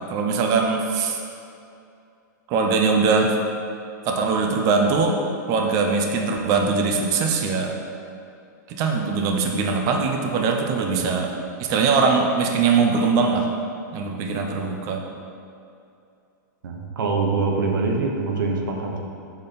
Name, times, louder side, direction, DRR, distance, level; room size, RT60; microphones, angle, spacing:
voice 1, 0.1-1.2 2.5-3.4 4.0-5.2 5.5-7.7 8.7-11.3 11.6-13.5 13.9-15.0, right 4 dB, 35° right, 2 dB, 0.7 m, -21 dB
voice 2, 16.6-19.0, right 4 dB, 90° right, 1 dB, 1.1 m, -25 dB
6.2 x 4.2 x 5.1 m, 2.6 s
supercardioid pair, 150°, 11 cm